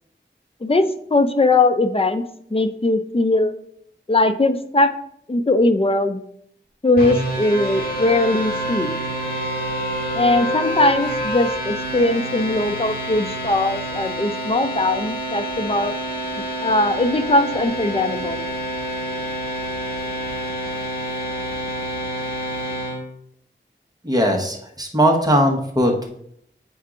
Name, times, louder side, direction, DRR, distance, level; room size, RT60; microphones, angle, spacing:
voice 1, 0.6-2.2 2.5-3.5 4.1-4.9 5.3-6.2 6.8-8.9 10.1-15.9 16.6-18.5, left 2 dB, 30° left, 8 dB, 0.5 m, -20 dB
sound 1, 7.0-23.0, equal, 50° left, 1.8 m, -28 dB
Wind instrument woodwind instrument, 7.4-11.7, equal, ahead, 1.6 m, -29 dB
voice 2, 24.0-26.1, equal, 20° right, 0 dB, 1.2 m, -19 dB
8.5 x 4.6 x 2.4 m, 0.70 s
wide cardioid pair, 40°, 20 cm